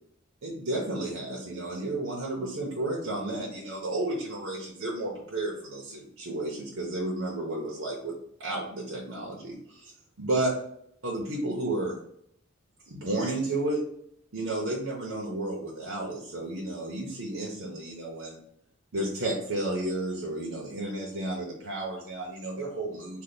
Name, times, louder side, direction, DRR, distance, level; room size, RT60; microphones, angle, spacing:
voice 1, 0.4-9.9 10.2-10.5 11.0-12.0 12.9-13.8 14.3-18.4 18.9-23.2, right 2 dB, 70° right, -3 dB, 0.8 m, -32 dB
3.3 x 2.3 x 3.9 m, 0.69 s
head